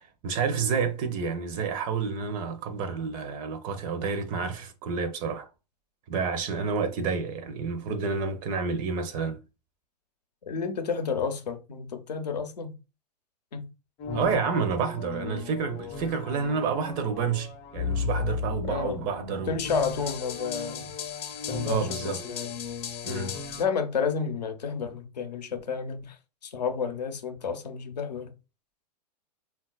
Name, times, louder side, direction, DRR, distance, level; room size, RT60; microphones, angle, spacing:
voice 1, 0.0-5.5 6.1-9.4 14.1-19.6 21.6-22.2 23.1-23.4, right 5 dB, 40° right, 0.5 m, -29 dB
voice 2, 10.5-12.8 13.5-13.7 18.6-19.1 19.5-20.9 21.5-22.5 23.0-28.3, left 6 dB, 90° left, 0.6 m, -31 dB
sound 1, 14.0-23.6, left 5 dB, 30° left, 0.5 m, -35 dB
3.8 x 2.3 x 2.3 m
hypercardioid pair, 110°, 21 cm